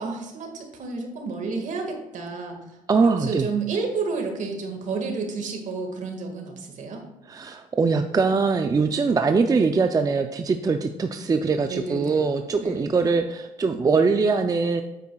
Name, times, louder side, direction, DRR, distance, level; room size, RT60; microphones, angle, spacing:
voice 1, 0.0-7.0 11.7-12.3 12.6-12.9, right 4 dB, 60° right, 3 dB, 1.8 m, -31 dB
voice 2, 2.9-3.5 7.3-14.8, right 4 dB, 25° right, 6 dB, 0.4 m, -22 dB
8.8 x 8.4 x 2.3 m, 1.0 s
cardioid pair, 105°, 15 cm